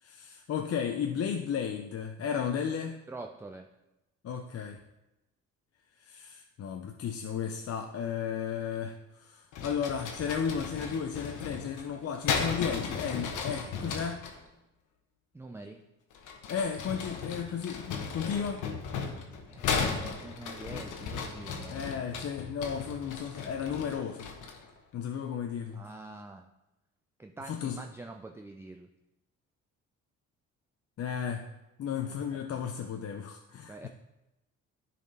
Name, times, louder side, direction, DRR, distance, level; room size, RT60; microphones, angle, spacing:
voice 1, 0.0-3.0 4.2-4.8 6.0-14.2 16.5-18.6 21.7-24.3 24.9-25.8 27.5-27.8 31.0-31.5 31.8-33.9, left 7 dB, 55° left, 4 dB, 0.6 m, -34 dB
voice 2, 3.1-3.7 15.3-15.8 19.5-22.0 25.7-26.5 27.2-28.9 32.0-32.2 33.7-33.9, right 2 dB, 10° right, 4 dB, 0.4 m, -45 dB
sound 1, 9.5-14.4 16.1-24.7, left 5 dB, 85° left, 1.1 m, -36 dB
10.5 x 4.3 x 4.0 m, 0.96 s
cardioid pair, 90°, 30 cm